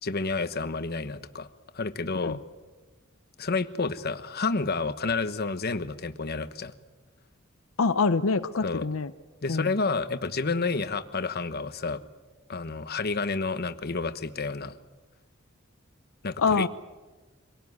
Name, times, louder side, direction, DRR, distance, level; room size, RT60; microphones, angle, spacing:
voice 1, 0.0-1.5 1.7-2.4 3.4-6.7 8.6-8.9 9.4-12.0 12.5-14.7 16.2-16.7, left 4 dB, 50° left, 11 dB, 1.1 m, -30 dB
voice 2, 7.8-9.1 9.5-9.7 16.4-16.7, left 4 dB, 80° left, 10 dB, 0.7 m, -25 dB
25.5 x 18.0 x 9.6 m, 1.3 s
head